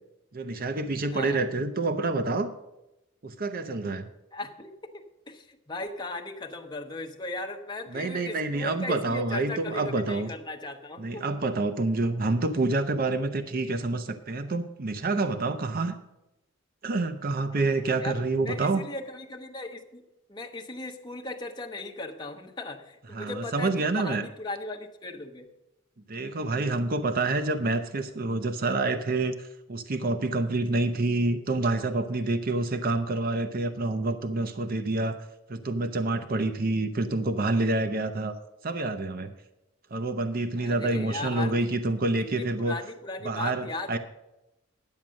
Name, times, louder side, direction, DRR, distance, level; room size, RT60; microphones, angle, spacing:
voice 1, 0.3-2.5 3.2-4.1 7.9-10.3 11.0-16.0 16.8-18.8 23.1-24.2 26.1-35.2 35.5-38.3 38.6-39.3 39.9-42.8 43.2-44.0, right 2 dB, 50° right, 9 dB, 0.7 m, -27 dB
voice 2, 1.1-1.4 4.3-11.2 18.0-20.0 20.3-25.5 40.6-41.7 42.2-44.0, left 2 dB, 20° left, 2 dB, 1.0 m, -37 dB
10.5 x 7.3 x 6.3 m, 0.93 s
head